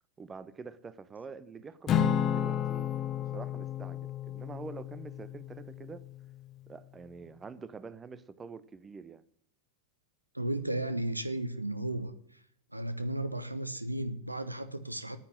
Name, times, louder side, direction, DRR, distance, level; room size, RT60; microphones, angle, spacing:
voice 1, 0.2-2.9 3.2-6.1 6.7-9.2, right 5 dB, 15° right, 0.8 m, -46 dB
Acoustic guitar / Strum, 1.9-6.3, left 9 dB, 30° left, 0.7 m, -32 dB
voice 2, 10.3-12.1 12.7-15.2, right 1 dB, 85° right, 0.9 m, -34 dB
9.7 x 8.8 x 9.7 m
figure-of-eight pair, 90°, 0 cm